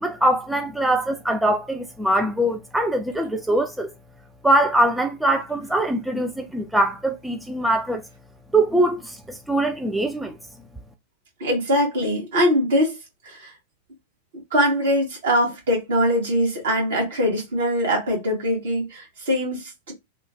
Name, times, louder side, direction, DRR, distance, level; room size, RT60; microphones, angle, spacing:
voice 1, 0.0-3.9 4.4-8.0 8.5-10.4, right 1 dB, 5° right, 0.3 m, -22 dB
voice 2, 11.4-13.0 13.2-13.5 14.5-19.9, equal, 60° right, 1.4 m, -22 dB
3.0 x 2.2 x 2.6 m
figure-of-eight pair, 90°, 0 cm